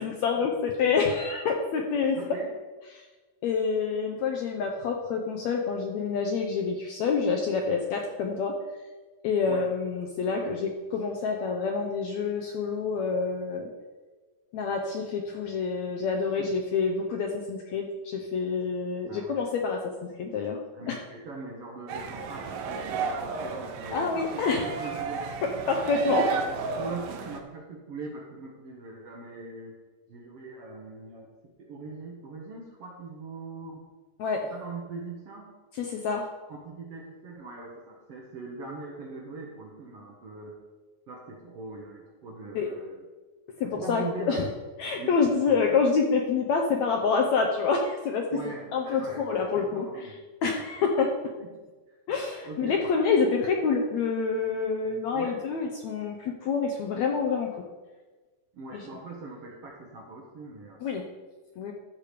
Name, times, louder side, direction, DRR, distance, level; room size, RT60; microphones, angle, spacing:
voice 1, 0.0-2.2 2.9-3.0 3.4-8.6 9.2-13.7 14.5-20.6 20.9-21.0 23.9-24.9 25.7-26.3 34.2-34.5 35.7-36.3 42.6-42.7 43.6-44.5 44.8-48.3 48.7-50.1 50.4-51.2 52.1-57.5 58.7-58.8 60.8-61.0 61.6-61.7, left 5 dB, 75° left, 2 dB, 1.7 m, -27 dB
voice 2, 2.2-2.5 9.5-9.6 10.4-10.6 16.4-16.5 19.1-19.5 20.7-25.3 26.1-29.7 30.1-31.3 31.6-33.8 34.5-35.5 36.5-40.5 41.1-43.1 43.6-44.4 45.0-45.8 48.3-50.2 51.4-51.5 51.9-52.0 52.4-52.8 55.1-55.4 58.5-61.0, right 3 dB, 60° right, -1 dB, 1.7 m, -41 dB
sound 1, 21.9-27.4, right 5 dB, 90° right, 2.7 m, -33 dB
13.5 x 4.9 x 5.1 m, 1.3 s
omnidirectional pair, 3.9 m